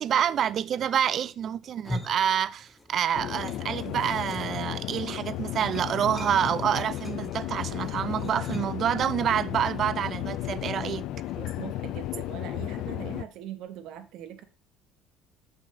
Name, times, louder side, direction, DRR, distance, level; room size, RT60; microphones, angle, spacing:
voice 1, 0.0-11.1, right 9 dB, 40° right, 0.4 m, -27 dB
sound 1, 1.6-3.0 3.3-8.9, left 1 dB, 5° left, 1.4 m, -42 dB
sound 2, 3.1-13.2, left 14 dB, 55° left, 0.4 m, -34 dB
voice 2, 11.4-14.4, right 11 dB, 60° right, 1.2 m, -41 dB
6.1 x 6.0 x 6.4 m
cardioid pair, 155°, 0 cm